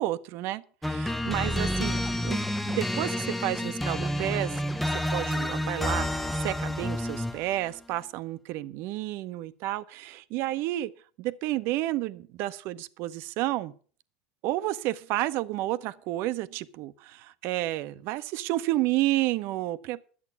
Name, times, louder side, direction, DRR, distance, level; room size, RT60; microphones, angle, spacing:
voice 1, 0.0-4.5 5.1-10.9 11.2-13.7 14.4-20.0, right 16 dB, 60° right, 0.9 m, -31 dB
sound 1, 0.8-7.5, left 1 dB, 5° left, 0.7 m, -29 dB
11.0 x 8.2 x 7.0 m
supercardioid pair, 105°, 5 cm